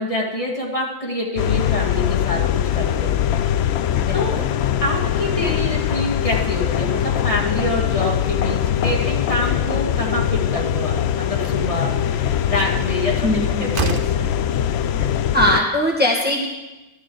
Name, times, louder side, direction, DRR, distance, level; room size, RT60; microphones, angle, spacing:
voice 1, 0.0-3.2 4.1-4.4 4.8-13.3 13.6-14.3, left 1 dB, 35° left, -3 dB, 2.0 m, -26 dB
sound 1, 1.4-15.6, left 10 dB, 90° left, 0.8 m, -22 dB
voice 2, 4.0-4.5 13.2-13.7 15.3-16.5, equal, 10° right, -2 dB, 1.5 m, -20 dB
Slam, 11.3-11.7 13.2-13.3 13.7-14.3, right 5 dB, 60° right, 1.0 m, -27 dB
13.5 x 12.0 x 3.9 m, 1.1 s
omnidirectional pair, 1.0 m